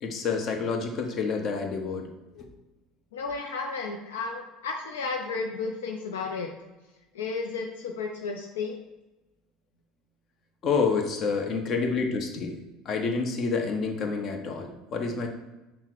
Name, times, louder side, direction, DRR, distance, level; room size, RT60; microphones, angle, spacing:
voice 1, 0.0-2.1 2.3-2.5 10.6-12.6 12.8-15.3, left 4 dB, 45° left, 3 dB, 0.8 m, -28 dB
voice 2, 3.1-6.5 7.1-8.8, left 4 dB, 80° left, 2 dB, 0.4 m, -33 dB
5.6 x 2.1 x 4.4 m, 1.1 s
hypercardioid pair, 70°, 0 cm